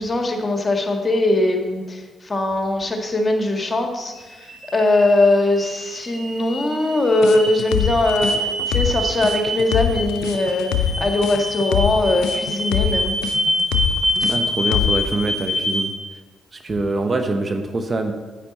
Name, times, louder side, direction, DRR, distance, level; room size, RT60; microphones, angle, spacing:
voice 1, 0.0-13.1, left 2 dB, 30° left, 3 dB, 1.7 m, -20 dB
sound 1, 4.1-15.8, equal, 85° right, 2.8 m, -26 dB
sound 2, 7.2-15.1, left 9 dB, 70° left, 0.5 m, -24 dB
voice 2, 14.2-15.9 16.5-18.1, right 2 dB, 40° right, 6 dB, 1.0 m, -24 dB
9.8 x 8.5 x 4.1 m, 1.3 s
hypercardioid pair, 40°, 0 cm